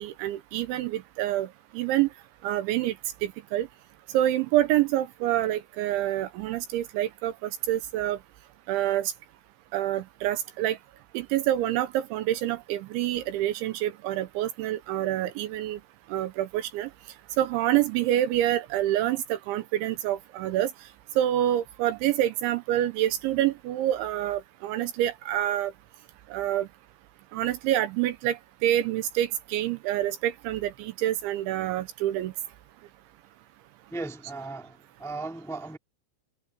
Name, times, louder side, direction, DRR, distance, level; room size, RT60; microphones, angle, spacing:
voice 1, 0.0-2.1 2.4-3.0 3.2-3.7 4.1-8.2 8.7-9.1 9.7-10.8 11.1-15.8 16.1-16.9 17.4-20.7 21.2-25.7 26.3-26.7 27.3-32.3, right 13 dB, 80° right, 3.0 m, -27 dB
voice 2, 33.9-35.8, right 3 dB, ahead, 1.0 m, -37 dB
omnidirectional pair, 5.9 m